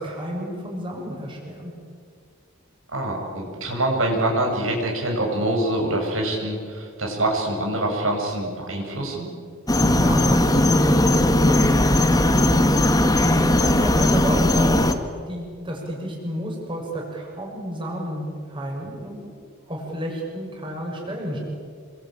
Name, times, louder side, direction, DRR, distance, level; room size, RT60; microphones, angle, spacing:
voice 1, 0.0-1.7 9.8-12.8 13.2-14.8 15.3-19.2 19.7-21.4, right 1 dB, 25° right, -1 dB, 6.6 m, -30 dB
voice 2, 2.9-9.3, right 1 dB, 80° right, 0 dB, 7.6 m, -25 dB
sound 1, 9.7-14.9, left 1 dB, 20° left, 1.7 m, -18 dB
28.0 x 23.5 x 9.0 m, 2.1 s
head